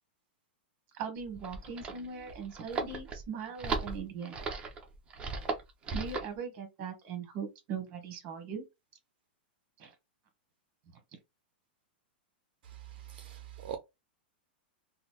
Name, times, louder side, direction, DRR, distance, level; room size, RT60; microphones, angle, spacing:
voice 1, 0.9-4.3 5.9-8.6 9.8-9.9, right 6 dB, 35° right, 1.1 m, -40 dB
sound 1, 1.2-6.3, right 4 dB, 20° right, 0.6 m, -37 dB
voice 2, 13.1-13.8, right 11 dB, 60° right, 0.5 m, -42 dB
3.6 x 2.0 x 2.9 m
supercardioid pair, 145°, 6 cm